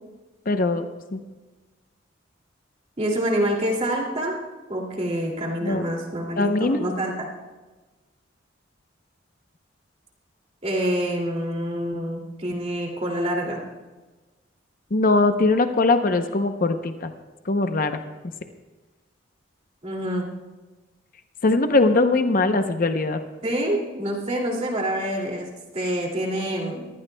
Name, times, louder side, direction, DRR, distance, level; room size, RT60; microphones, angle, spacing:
voice 1, 0.5-0.9 1.1-1.2 5.6-5.8 6.4-6.9 14.9-17.1 17.5-18.0 21.4-23.2, left 3 dB, 45° left, 7 dB, 0.7 m, -21 dB
voice 2, 3.0-4.4 4.7-7.3 10.6-13.6 19.8-20.3 23.4-25.5 25.7-26.9, right 1 dB, 35° right, -1 dB, 2.5 m, -26 dB
22.5 x 15.0 x 2.2 m, 1.2 s
head